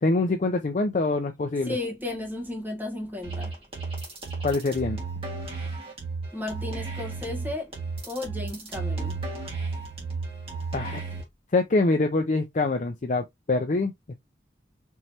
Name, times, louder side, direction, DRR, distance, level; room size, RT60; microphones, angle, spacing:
voice 1, 0.0-1.8 4.4-5.0 10.7-11.0 11.5-13.9, left 3 dB, 40° left, 0.5 m, -24 dB
voice 2, 1.7-3.5 6.3-7.7 8.0-9.2, left 2 dB, 10° right, 1.2 m, -34 dB
sound 1, 3.2-11.2, right 4 dB, 30° right, 1.7 m, -33 dB
4.6 x 3.1 x 2.8 m
head